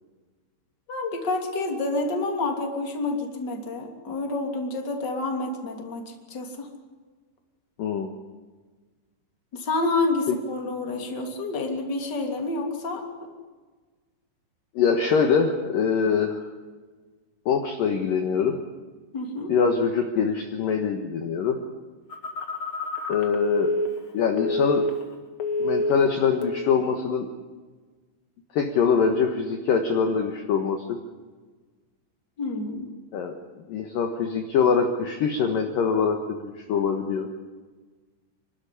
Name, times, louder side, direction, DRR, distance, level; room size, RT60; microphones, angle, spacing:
voice 1, 0.9-6.7 9.5-13.3 19.1-19.5 32.4-32.9, left 2 dB, 25° left, 2 dB, 2.8 m, -29 dB
voice 2, 7.8-8.1 10.3-10.4 14.8-16.5 17.5-18.6 19.5-21.6 23.1-23.7 24.1-24.8 25.6-27.3 28.5-30.8 33.1-33.3 33.7-37.3, left 6 dB, 65° left, 4 dB, 2.6 m, -23 dB
Telephone, 22.1-25.1 25.4-26.1 26.4-26.7, left 1 dB, 45° left, 1.7 m, -27 dB
28.5 x 13.0 x 9.9 m, 1.4 s
omnidirectional pair, 5.4 m